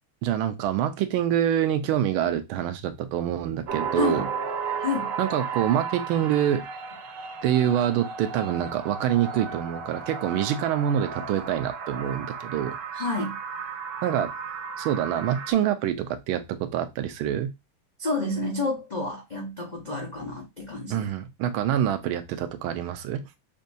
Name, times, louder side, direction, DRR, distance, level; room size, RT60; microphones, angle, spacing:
voice 1, 0.2-4.3 5.2-6.6 7.4-12.8 14.0-14.3 14.8-17.5 20.9-23.2, right 10 dB, 85° right, 1.5 m, -26 dB
sound 1, 3.7-15.5, right 5 dB, 65° right, 1.3 m, -34 dB
voice 2, 3.9-4.3 4.8-5.1 12.9-13.4 18.0-21.1, left 3 dB, 85° left, 0.4 m, -29 dB
6.3 x 2.3 x 2.6 m
omnidirectional pair, 2.2 m